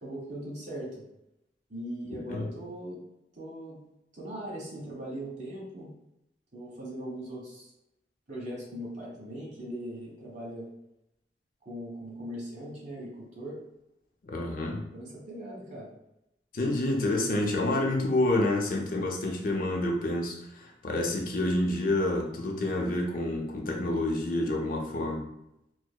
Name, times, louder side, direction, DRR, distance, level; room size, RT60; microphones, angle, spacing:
voice 1, 0.0-1.0 1.7-3.0 3.4-3.8 4.1-5.9 6.5-7.7 8.3-10.7 11.6-13.6 14.9-15.9, right 1 dB, 40° right, -5 dB, 1.3 m, -39 dB
voice 2, 14.2-14.8 16.5-25.3, left 1 dB, 50° left, 0 dB, 0.5 m, -28 dB
4.5 x 2.0 x 2.2 m, 0.83 s
head